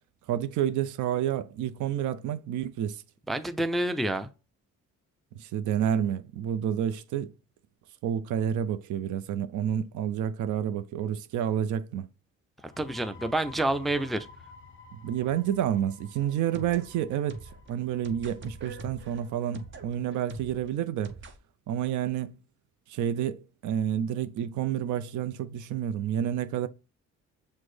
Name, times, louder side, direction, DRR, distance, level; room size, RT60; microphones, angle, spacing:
voice 1, 0.3-3.0 5.3-7.3 8.0-12.1 14.9-17.4 17.7-21.2 21.7-22.3 22.9-26.7, right 10 dB, 75° right, 0.5 m, -29 dB
voice 2, 3.3-4.3 12.8-14.3, right 1 dB, ahead, 0.3 m, -28 dB
sound 1, 12.6-20.0, left 4 dB, 40° left, 0.6 m, -52 dB
sound 2, 16.2-21.4, right 3 dB, 40° right, 0.7 m, -44 dB
6.1 x 2.1 x 3.2 m
cardioid pair, 90°, 30 cm